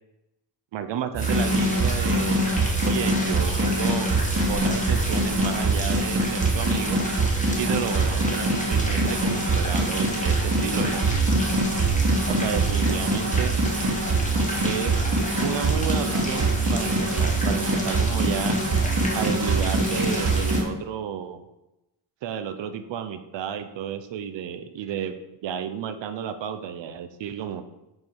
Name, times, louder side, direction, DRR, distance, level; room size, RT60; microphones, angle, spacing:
voice 1, 0.7-2.6 2.8-4.1 4.5-7.0 7.6-11.0 12.3-13.5 14.6-15.1 15.4-18.6 19.1-21.4 22.2-25.2 25.4-27.6, right 9 dB, 85° right, 9 dB, 0.7 m, -32 dB
sound 1, 1.1-20.6, right 2 dB, 35° right, 1.3 m, -24 dB
sound 2, 1.2-20.6, left 1 dB, 15° left, 1.7 m, -33 dB
7.6 x 4.8 x 4.6 m, 0.94 s
cardioid pair, 110°, 43 cm